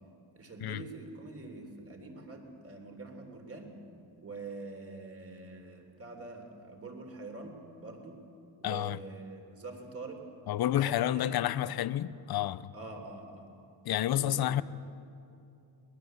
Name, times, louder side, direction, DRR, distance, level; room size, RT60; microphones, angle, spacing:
voice 1, 0.4-3.8 4.2-8.2 8.6-10.2 10.8-11.7 12.7-13.5 14.2-14.6, right 3 dB, 30° right, 3.6 m, -45 dB
voice 2, 8.6-9.0 10.5-12.7 13.8-14.6, left 12 dB, 50° left, 0.7 m, -30 dB
22.5 x 19.5 x 8.0 m
cardioid pair, 130°, 48 cm